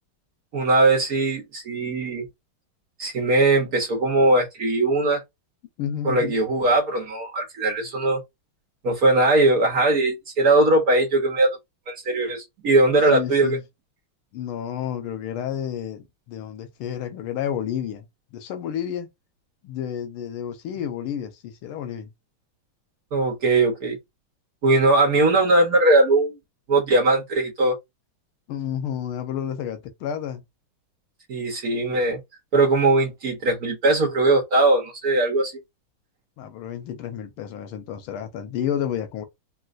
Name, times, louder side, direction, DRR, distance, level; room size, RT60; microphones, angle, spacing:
voice 1, 0.5-2.2 3.0-5.2 6.0-8.2 8.8-11.5 11.9-13.6 23.1-24.0 24.6-26.4 26.7-27.7 31.3-32.2 32.5-35.5, right 2 dB, 55° right, 1.2 m, -20 dB
voice 2, 5.8-6.3 13.1-13.6 14.3-18.1 18.3-19.1 19.6-22.1 28.5-30.4 36.4-39.3, left 9 dB, 85° left, 1.5 m, -30 dB
4.0 x 2.3 x 2.5 m
omnidirectional pair, 2.4 m